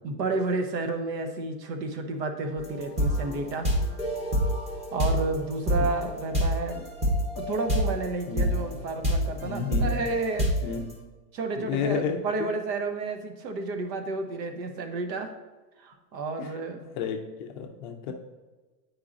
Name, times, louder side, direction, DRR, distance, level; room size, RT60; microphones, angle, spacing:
voice 1, 0.0-3.7 4.9-6.8 7.3-10.5 11.3-15.3 15.8-16.8, right 3 dB, 90° right, 6 dB, 1.1 m, -31 dB
sound 1, 2.6-8.0 8.4-10.7, equal, 15° right, 0.9 m, -27 dB
voice 2, 9.4-10.0 10.6-10.8 11.6-12.2 16.4-16.5 17.0-18.1, left 7 dB, 35° left, 3 dB, 0.4 m, -31 dB
9.5 x 4.7 x 2.5 m, 1.2 s
supercardioid pair, 150°, 49 cm